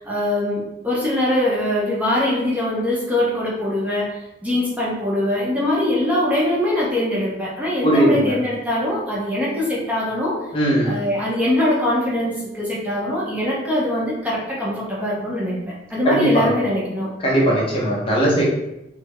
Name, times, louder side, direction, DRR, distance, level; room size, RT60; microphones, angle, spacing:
voice 1, 0.0-10.4 10.8-17.1, left 1 dB, 10° right, -6 dB, 0.7 m, -22 dB
voice 2, 7.8-8.3 10.5-10.9 16.0-16.4 17.2-18.4, right 1 dB, 30° left, -4 dB, 0.7 m, -18 dB
3.7 x 2.0 x 3.1 m, 0.91 s
head